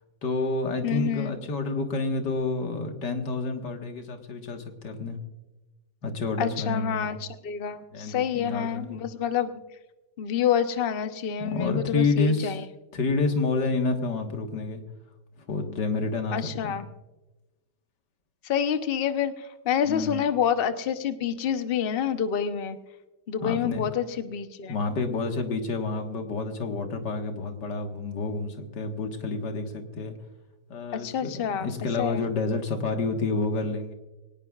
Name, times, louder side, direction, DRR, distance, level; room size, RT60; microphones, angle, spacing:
voice 1, 0.2-5.2 6.0-7.1 7.9-9.0 11.4-12.6 12.9-14.8 15.4-16.8 19.8-20.3 23.4-23.9 24.7-30.2 30.7-33.9, left 3 dB, 65° left, 4 dB, 2.2 m, -29 dB
voice 2, 0.8-1.3 6.4-9.5 10.2-12.6 16.3-16.8 18.4-22.8 23.3-24.7 30.9-31.7 32.0-32.2, left 8 dB, 45° left, 9 dB, 0.7 m, -28 dB
23.0 x 18.5 x 2.4 m, 1.1 s
omnidirectional pair, 2.0 m